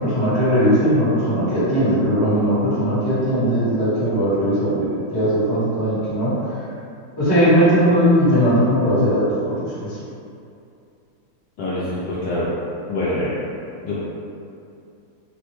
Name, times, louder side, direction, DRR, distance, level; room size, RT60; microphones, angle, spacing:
voice 1, 0.0-6.7 7.2-10.0, equal, 20° left, -12 dB, 0.6 m, -19 dB
voice 2, 11.6-12.5 12.9-13.3 13.8-14.0, left 1 dB, 75° left, -9 dB, 1.0 m, -24 dB
3.8 x 2.1 x 3.0 m, 2.5 s
omnidirectional pair, 2.3 m